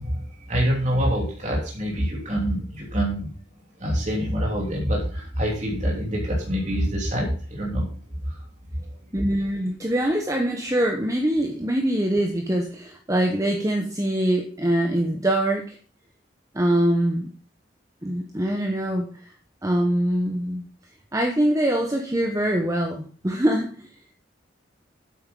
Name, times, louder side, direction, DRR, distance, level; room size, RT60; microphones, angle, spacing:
voice 1, 0.0-3.3 3.8-7.9 8.2-8.4, equal, 40° right, -3 dB, 3.0 m, -25 dB
voice 2, 9.1-15.8 16.5-17.3 18.0-19.1 19.6-20.6 21.1-23.9, right 1 dB, 15° right, 3 dB, 1.0 m, -23 dB
8.8 x 7.9 x 5.3 m, 0.41 s
head